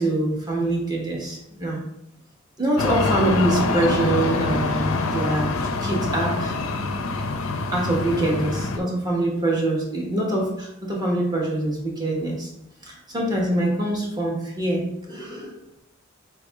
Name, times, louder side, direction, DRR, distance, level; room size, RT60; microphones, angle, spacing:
voice 1, 0.0-1.8 2.6-5.5 5.8-6.6 7.7-12.5 12.8-15.6, right 1 dB, 20° right, -2 dB, 1.1 m, -24 dB
sound 1, 2.8-8.8, left 3 dB, 90° left, 0.5 m, -25 dB
4.5 x 3.4 x 3.4 m, 0.81 s
head